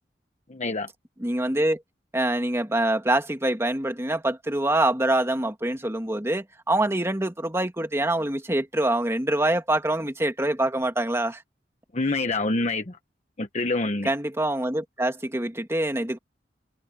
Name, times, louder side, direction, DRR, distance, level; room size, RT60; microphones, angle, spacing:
voice 1, 0.5-0.9 11.9-13.0 13.4-14.1, left 2 dB, 40° left, 1.0 m, -26 dB
voice 2, 1.2-1.8 2.1-11.4 14.0-16.2, right 1 dB, 15° right, 2.1 m, -25 dB
head